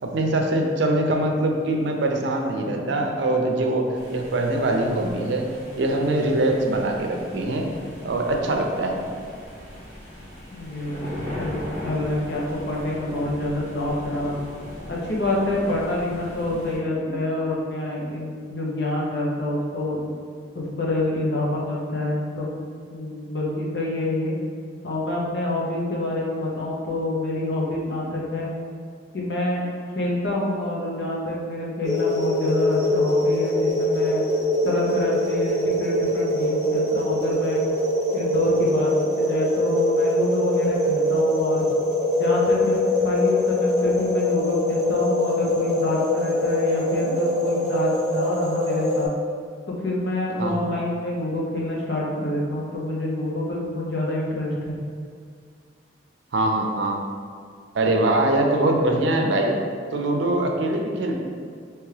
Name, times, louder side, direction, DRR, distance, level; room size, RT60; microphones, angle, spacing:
voice 1, 0.0-5.4 5.8-7.7 8.0-9.0 16.5-16.6 50.4-50.6 56.3-57.0 57.7-59.6 59.9-61.2, right 1 dB, 75° right, 2 dB, 0.5 m, -23 dB
sound 1, 3.9-16.8, left 1 dB, 15° left, 1.3 m, -39 dB
voice 2, 10.5-14.4 14.9-20.0 20.5-22.6 22.9-24.4 24.8-28.5 29.1-29.6 29.9-34.3 34.6-37.6 38.1-38.9 39.2-41.7 42.2-49.1 49.7-54.8, left 1 dB, 65° left, -4 dB, 0.8 m, -27 dB
sound 2, 31.8-49.1, left 1 dB, 5° right, 1.5 m, -23 dB
3.5 x 3.0 x 3.3 m, 2.1 s
head